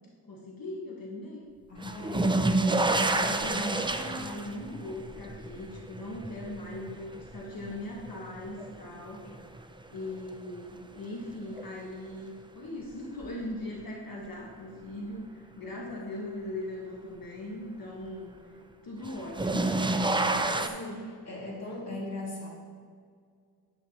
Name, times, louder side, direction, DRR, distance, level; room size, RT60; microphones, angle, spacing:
voice 1, 0.3-1.4 2.1-9.4 9.9-18.6 18.8-19.9, left 1 dB, 55° left, -3 dB, 1.3 m, -39 dB
voice 2, 1.7-3.0 9.2-9.4 20.3-22.5, left 1 dB, 40° left, -4 dB, 2.3 m, -40 dB
sound 1, 1.8-8.8 9.3-10.0 11.6-11.7 13.2-13.3 19.0-20.7, right 2 dB, 15° right, 0.4 m, -29 dB
10.5 x 7.9 x 2.8 m, 2.1 s
wide cardioid pair, 85°, 40 cm